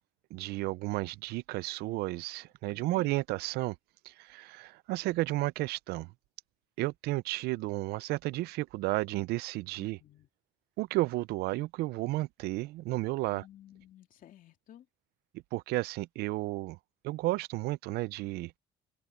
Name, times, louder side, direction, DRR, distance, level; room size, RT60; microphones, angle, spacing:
voice 1, 0.3-3.8 4.0-6.1 6.8-10.0 10.8-13.4 15.5-16.8 17.0-18.5, right 19 dB, 75° right, 0.5 m, -32 dB
voice 2, 2.7-3.1 9.8-10.3 13.3-14.9, left 12 dB, 55° left, 2.7 m, -54 dB
cardioid pair, 95°, 16 cm